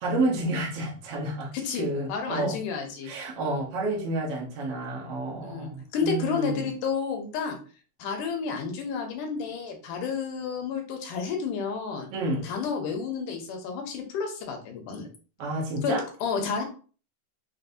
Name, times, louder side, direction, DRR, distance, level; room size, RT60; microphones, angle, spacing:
voice 1, 0.0-2.6 3.0-6.6 12.1-12.5 15.4-16.0, right 2 dB, 70° right, 1.4 m, -30 dB
voice 2, 1.5-3.1 5.4-7.6 8.0-12.1 12.4-15.1 15.8-16.6, left 5 dB, 80° left, 2.2 m, -31 dB
5.9 x 2.5 x 2.6 m
omnidirectional pair, 3.8 m